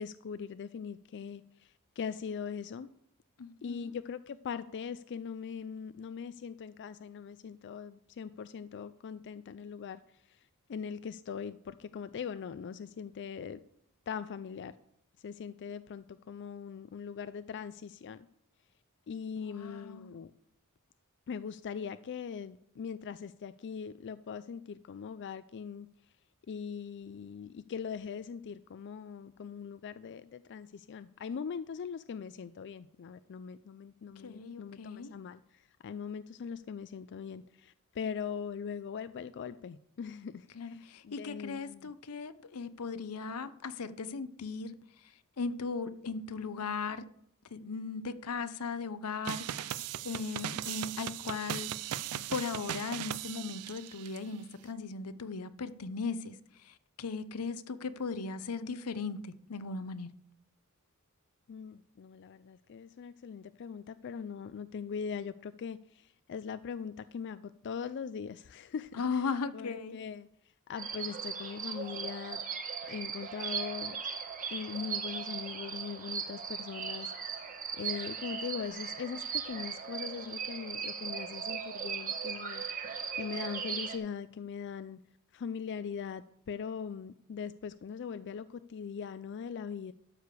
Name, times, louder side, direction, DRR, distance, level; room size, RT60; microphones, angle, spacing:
voice 1, 0.0-2.9 3.6-13.6 14.1-14.7 15.2-18.3 19.1-20.3 21.3-25.9 26.5-41.9 61.5-70.3 70.7-72.4 72.9-74.0 74.5-85.0 85.3-89.9, left 6 dB, 55° left, 0.4 m, -41 dB
voice 2, 3.4-3.9 19.4-20.1 34.2-35.1 40.5-44.7 45.4-47.0 47.5-51.7 52.3-56.4 56.6-60.1 69.0-70.0, left 4 dB, 85° left, 0.7 m, -37 dB
sound 1, 49.3-54.2, right 10 dB, 90° right, 0.4 m, -38 dB
sound 2, 70.8-84.0, right 6 dB, 40° right, 1.6 m, -38 dB
12.5 x 5.0 x 6.8 m
head